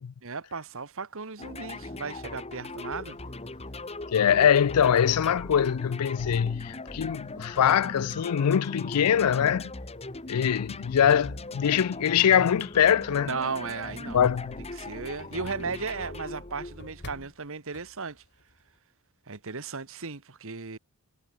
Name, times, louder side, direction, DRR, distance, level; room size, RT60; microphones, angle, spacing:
voice 1, 0.2-3.2 13.3-14.3 14.7-18.2 19.3-20.8, right 4 dB, 65° right, 1.5 m, -35 dB
sound 1, 1.4-17.3, left 2 dB, 30° left, 1.9 m, -40 dB
sound 2, 2.5-18.8, left 1 dB, 50° left, 4.9 m, -57 dB
voice 2, 4.1-9.7 10.3-13.3 14.1-14.5, left 8 dB, 85° left, 0.4 m, -23 dB
head